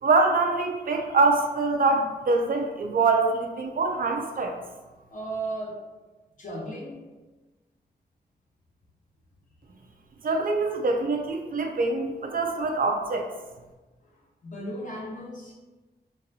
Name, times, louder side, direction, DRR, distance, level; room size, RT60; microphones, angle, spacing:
voice 1, 0.0-4.6 10.2-13.3, right 3 dB, 55° right, 3 dB, 0.4 m, -24 dB
voice 2, 5.1-5.8 6.4-7.0 14.0-15.5, right 2 dB, 50° left, -3 dB, 1.0 m, -35 dB
4.0 x 2.5 x 2.7 m, 1.2 s
wide cardioid pair, 90°, 17 cm